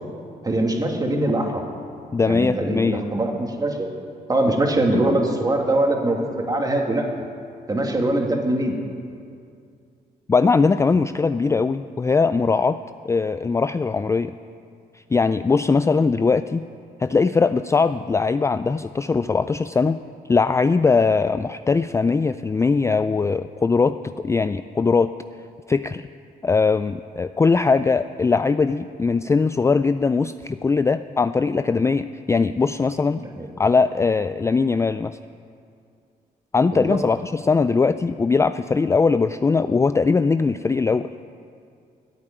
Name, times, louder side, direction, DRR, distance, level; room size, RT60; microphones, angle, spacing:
voice 1, 0.4-1.6 2.3-3.9 4.3-7.1 7.7-8.7 33.2-33.5 36.7-37.1, right 1 dB, 25° right, 1 dB, 2.3 m, -22 dB
voice 2, 2.1-3.0 10.3-12.8 13.0-14.3 15.1-16.6 17.0-20.0 20.3-25.1 25.7-26.1 26.4-33.2 33.6-35.2 36.5-41.1, left 4 dB, 20° left, 11 dB, 0.3 m, -20 dB
13.5 x 8.6 x 9.9 m, 2.3 s
cardioid pair, 85°, 16 cm